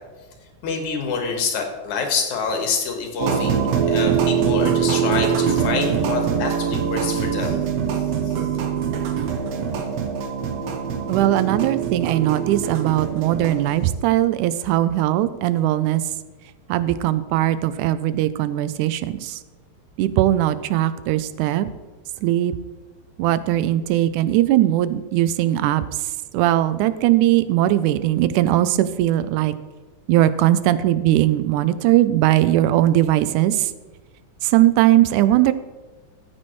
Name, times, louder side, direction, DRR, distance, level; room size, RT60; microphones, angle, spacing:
voice 1, 0.6-7.6 7.9-8.4, left 5 dB, 75° left, 3 dB, 2.8 m, -27 dB
sound 1, 3.2-13.7, right 7 dB, 65° right, 1.9 m, -23 dB
voice 2, 11.1-16.0 16.7-19.4 20.0-21.7 22.2-22.6 23.2-29.5 30.1-33.7 34.4-35.5, right 13 dB, 90° right, 14 dB, 2.0 m, -19 dB
14.5 x 8.7 x 3.1 m, 1.3 s
omnidirectional pair, 3.5 m